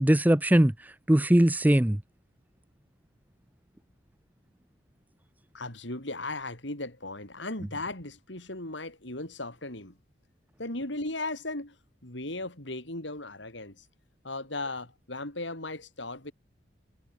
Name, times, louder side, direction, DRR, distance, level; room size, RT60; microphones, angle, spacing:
voice 1, 0.0-2.0, right 1 dB, 10° right, 0.5 m, -21 dB
voice 2, 5.5-10.0 10.6-11.8 12.0-13.9 14.2-16.3, left 2 dB, 70° left, 5.1 m, -37 dB
head